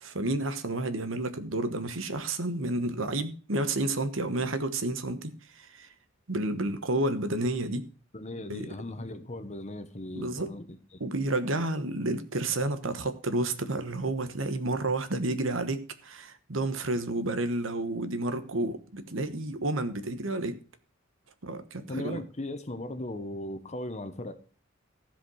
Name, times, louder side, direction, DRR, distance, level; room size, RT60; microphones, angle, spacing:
voice 1, 0.0-5.3 5.6-5.9 6.3-7.8 8.5-8.7 10.1-10.5 11.0-20.6 21.4-22.2, right 2 dB, 75° right, 1.2 m, -30 dB
voice 2, 8.1-11.0 21.9-24.3, left 1 dB, 35° left, 1.1 m, -38 dB
15.0 x 5.2 x 6.2 m
head